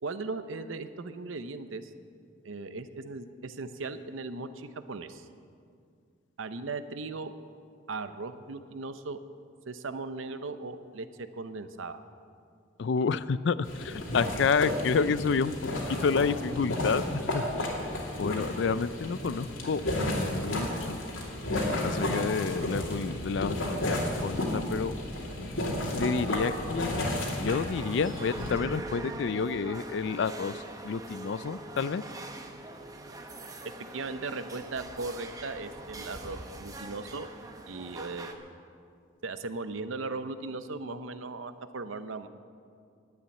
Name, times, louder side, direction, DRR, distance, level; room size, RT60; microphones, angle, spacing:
voice 1, 0.0-1.9 2.4-5.3 6.4-7.3 7.9-9.2 9.7-12.0 33.9-37.3 37.7-38.5 39.2-42.3, right 3 dB, 75° right, 11 dB, 0.7 m, -38 dB
voice 2, 12.8-15.5 16.0-17.7 18.2-21.0 21.8-24.9 26.0-26.9 27.4-30.5 30.8-32.0, left 5 dB, 60° left, 16 dB, 0.4 m, -29 dB
sound 1, 13.7-28.5, left 1 dB, 80° left, 2.6 m, -32 dB
sound 2, 27.7-38.3, right 2 dB, 20° right, 0.7 m, -43 dB
10.5 x 8.6 x 9.6 m, 2.3 s
head